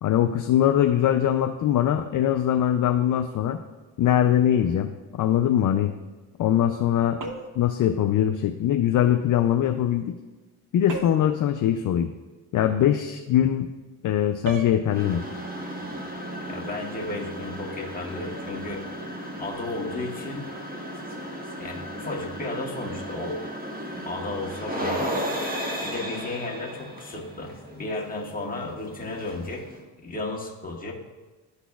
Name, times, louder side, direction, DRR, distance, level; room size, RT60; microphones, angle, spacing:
voice 1, 0.0-3.6 4.0-5.9 6.4-7.2 7.6-10.1 10.7-12.1 12.5-13.7 14.0-15.2, left 10 dB, 45° left, 7 dB, 0.4 m, -22 dB
sound 1, 7.2-7.7 10.9-11.4 14.4-14.8, right 1 dB, 40° right, 0.9 m, -34 dB
sound 2, 14.9-29.8, equal, 20° right, 1.2 m, -35 dB
voice 2, 16.5-18.8 19.4-20.5 21.6-23.4 24.0-25.1 25.8-29.6 30.0-30.9, left 2 dB, 15° left, -2 dB, 1.6 m, -33 dB
12.0 x 4.1 x 2.3 m, 1.2 s
supercardioid pair, 80°, 49 cm